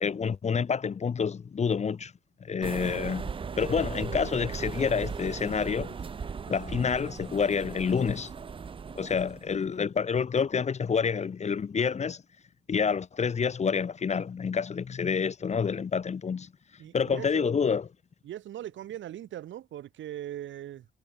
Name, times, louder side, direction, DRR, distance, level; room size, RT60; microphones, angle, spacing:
voice 1, 0.0-2.1 2.4-3.3 3.6-5.9 6.5-8.3 9.0-12.2 12.7-16.5 16.9-17.8, left 6 dB, 35° left, 0.9 m, -28 dB
sound 1, 2.6-9.6, right 6 dB, 25° right, 0.5 m, -37 dB
voice 2, 16.8-17.5 18.2-20.9, right 12 dB, 70° right, 1.7 m, -40 dB
cardioid pair, 90°, 20 cm